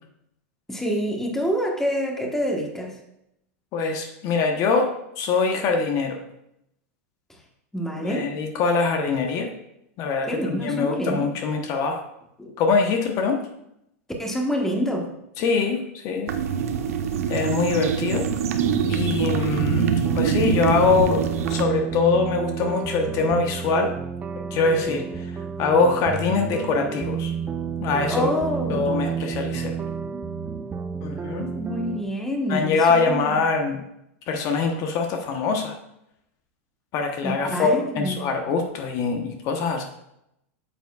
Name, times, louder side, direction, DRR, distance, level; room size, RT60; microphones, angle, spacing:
voice 1, 0.7-3.0 7.7-8.3 10.3-11.3 12.4-12.5 14.2-15.1 28.1-28.9 31.6-33.4 37.2-38.3, equal, 5° left, 1 dB, 1.2 m, -27 dB
voice 2, 3.7-6.2 8.0-9.5 10.0-12.0 12.6-13.4 15.4-16.4 17.3-18.3 18.9-23.9 24.5-27.3 27.8-28.3 28.7-29.8 31.0-31.5 32.5-33.8 34.3-35.8 36.9-39.8, left 4 dB, 45° left, 4 dB, 1.0 m, -23 dB
sound 1, 16.3-21.6, right 7 dB, 85° right, 0.7 m, -24 dB
sound 2, 18.6-32.0, right 6 dB, 20° right, 0.5 m, -30 dB
8.8 x 7.1 x 2.4 m, 0.81 s
hypercardioid pair, 125°, 8 cm